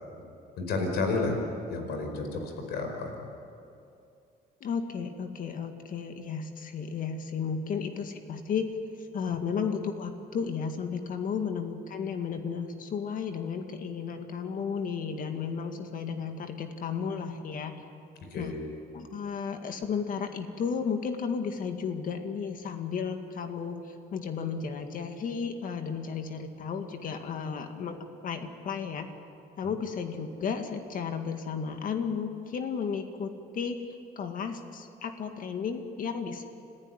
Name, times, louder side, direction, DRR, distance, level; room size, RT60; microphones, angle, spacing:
voice 1, 0.6-1.4 1.7-3.2 18.3-18.5, left 3 dB, 75° left, 4 dB, 4.9 m, -31 dB
voice 2, 4.6-8.7 9.1-17.8 18.4-18.5 18.9-28.0 28.2-29.1 29.6-36.4, left 6 dB, 55° left, 6 dB, 2.0 m, -33 dB
26.5 x 15.0 x 9.7 m, 2.6 s
cardioid pair, 110°, 17 cm